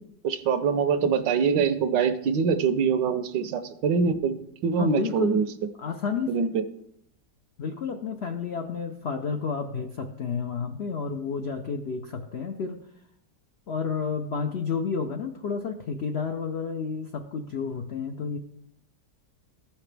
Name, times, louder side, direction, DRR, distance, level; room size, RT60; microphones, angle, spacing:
voice 1, 0.2-5.4 6.3-6.6, right 6 dB, 80° right, 10 dB, 1.4 m, -24 dB
voice 2, 4.8-5.4 5.8-6.5 7.6-12.8 13.7-18.4, left 5 dB, 80° left, 5 dB, 0.5 m, -31 dB
15.0 x 5.9 x 3.3 m, 0.73 s
omnidirectional pair, 1.9 m